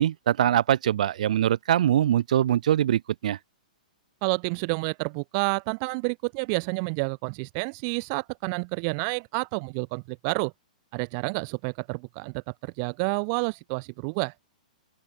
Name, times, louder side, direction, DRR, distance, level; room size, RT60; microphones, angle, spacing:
voice 1, 0.0-3.4, right 11 dB, 60° right, 1.2 m, -23 dB
voice 2, 4.2-10.5 10.9-14.3, right 37 dB, 30° right, 1.2 m, -29 dB
open air
hypercardioid pair, 165°, 4 cm